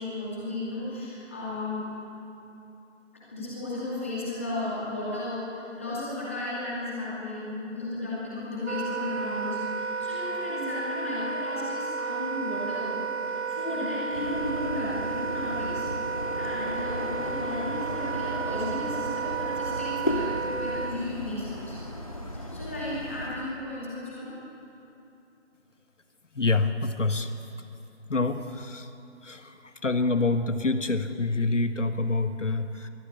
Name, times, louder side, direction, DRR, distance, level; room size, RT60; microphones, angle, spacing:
voice 1, 0.0-1.8 3.1-13.0 13.3-15.9 16.4-21.8 22.3-24.3, left 2 dB, 10° left, -8 dB, 2.4 m, -34 dB
Wind instrument woodwind instrument, 8.7-20.9, right 5 dB, 60° right, 1.2 m, -32 dB
sound 1, 14.1-23.3, left 1 dB, 30° left, 1.5 m, -35 dB
voice 2, 26.4-27.3 28.1-28.9 29.2-29.4 29.8-32.9, left 3 dB, 75° left, 9 dB, 1.3 m, -26 dB
23.0 x 15.0 x 8.4 m, 2.8 s
figure-of-eight pair, 175°, 37 cm